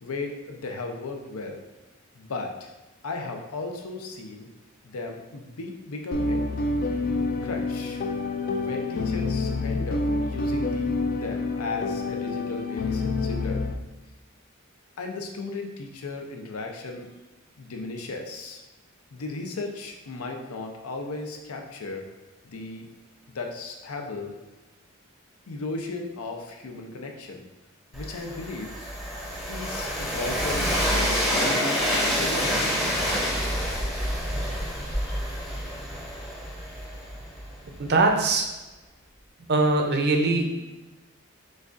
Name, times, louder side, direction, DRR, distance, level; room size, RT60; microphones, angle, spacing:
voice 1, 0.0-1.6 2.2-2.7 3.0-4.5 4.9-6.4 7.4-8.0 8.6-13.7 15.0-17.1 17.6-18.6 19.1-22.1 22.4-22.9 23.3-24.3 25.5-27.5 27.9-28.7 29.5-32.7, left 3 dB, 85° left, 3 dB, 0.6 m, -35 dB
sound 1, 6.1-13.7, left 3 dB, 40° left, 0.3 m, -27 dB
Train, 27.9-37.8, equal, ahead, 0.6 m, -27 dB
voice 2, 37.8-38.5 39.5-40.5, right 3 dB, 50° right, 3 dB, 0.5 m, -22 dB
6.2 x 2.3 x 2.5 m, 1.1 s
head